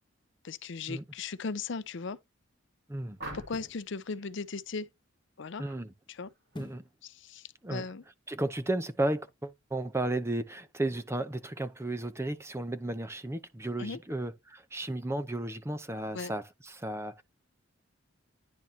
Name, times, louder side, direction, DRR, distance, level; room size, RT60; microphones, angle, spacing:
voice 1, 0.4-2.2 3.3-4.9 5.4-5.6 6.1-6.3 7.0-8.0 13.8-14.0 16.1-16.3, left 4 dB, 60° left, 0.6 m, -37 dB
sound 1, 1.7-1.8 3.4-3.9 6.5-7.0 7.4-7.5, left 1 dB, 20° left, 0.8 m, -47 dB
sound 2, 3.2-3.8 5.6-5.8 6.2-6.6, right 1 dB, 55° right, 2.9 m, -44 dB
voice 2, 5.6-5.9 6.6-6.8 7.6-7.9 8.3-17.2, right 1 dB, 15° right, 0.6 m, -34 dB
10.5 x 4.1 x 2.8 m
head